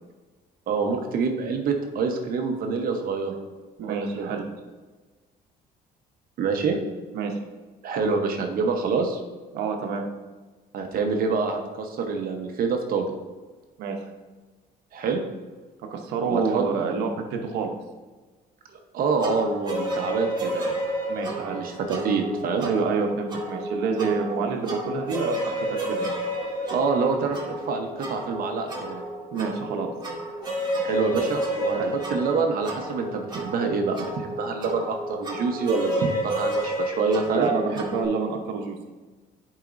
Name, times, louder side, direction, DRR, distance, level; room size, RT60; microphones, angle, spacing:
voice 1, 0.7-3.4 3.8-4.4 6.4-6.8 7.8-9.2 10.7-13.1 14.9-15.2 16.3-16.6 18.9-20.7 21.5-22.7 24.4-24.5 26.7-29.0 30.8-31.8 32.1-37.5, right 4 dB, 60° right, 4 dB, 1.0 m, -26 dB
voice 2, 3.8-4.4 7.1-7.4 9.5-10.0 13.8-14.0 15.8-17.7 21.1-21.6 22.6-26.1 29.3-29.9 31.7-31.9 37.3-38.8, right 5 dB, 90° right, 3 dB, 0.9 m, -28 dB
sound 1, 19.2-38.0, equal, 25° right, 1.9 m, -31 dB
10.0 x 4.9 x 2.6 m, 1.3 s
cardioid pair, 110°, 17 cm